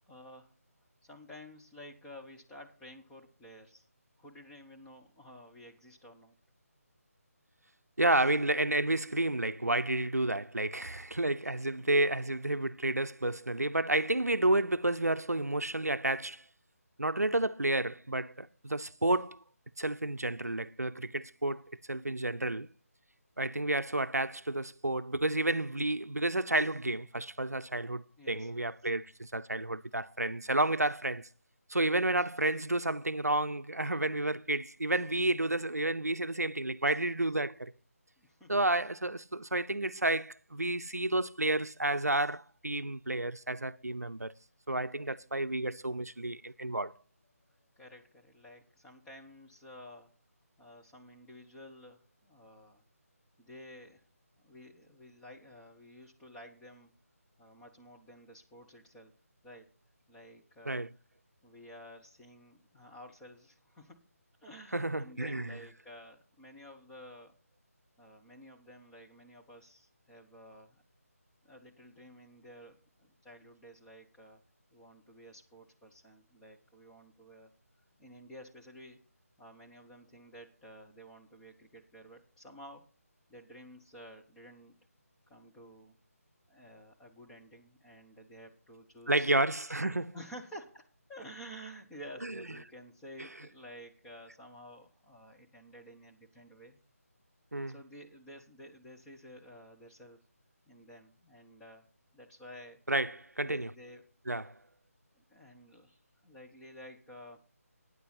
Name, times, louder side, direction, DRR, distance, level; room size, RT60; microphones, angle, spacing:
voice 1, 0.1-0.5 1.0-3.8 4.2-6.3 28.2-28.6 38.2-38.6 45.0-45.2 47.8-50.1 50.6-52.8 53.4-54.0 54.4-56.9 57.4-59.1 59.4-59.7 60.1-60.9 61.4-64.1 64.4-67.4 68.0-70.8 71.4-74.4 74.7-77.5 78.0-79.0 79.4-82.9 83.3-84.8 85.3-86.0 86.5-89.3 90.1-96.8 97.7-100.2 100.7-101.8 102.1-102.8 103.4-104.0 105.3-107.4, equal, 5° left, 1.0 m, -52 dB
voice 2, 8.0-16.4 17.0-19.4 19.8-22.7 23.4-31.3 31.7-37.7 38.5-44.3 44.7-46.9 60.7-60.9 64.7-65.6 89.1-90.2 92.2-92.3 93.2-93.3 97.5-97.8 102.9-103.7 104.3-104.6, right 2 dB, 85° right, 0.6 m, -31 dB
12.5 x 9.6 x 4.2 m
figure-of-eight pair, 155°, 8 cm